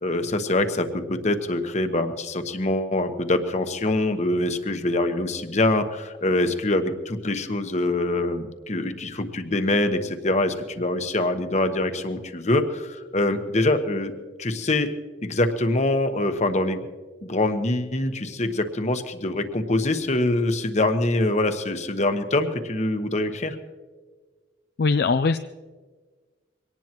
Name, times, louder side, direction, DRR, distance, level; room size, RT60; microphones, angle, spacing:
voice 1, 0.0-14.1 14.4-14.9 15.2-16.8 17.2-23.6, left 2 dB, 40° left, 8 dB, 1.1 m, -24 dB
voice 2, 24.8-25.4, left 4 dB, 60° left, 9 dB, 0.4 m, -20 dB
23.5 x 18.0 x 3.0 m, 1.4 s
head